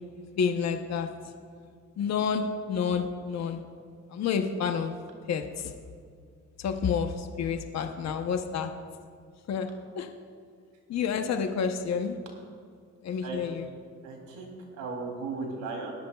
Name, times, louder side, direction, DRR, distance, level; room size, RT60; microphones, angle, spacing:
voice 1, 0.4-1.1 2.0-3.6 4.1-4.9 5.3-5.7 6.6-8.7 9.5-9.7 10.0-10.1 10.9-12.2 13.0-13.7, left 6 dB, 60° left, 5 dB, 0.9 m, -29 dB
voice 2, 14.0-15.9, right 3 dB, 85° right, 0 dB, 3.2 m, -36 dB
21.5 x 12.5 x 2.4 m, 2.2 s
cardioid pair, 90°, 30 cm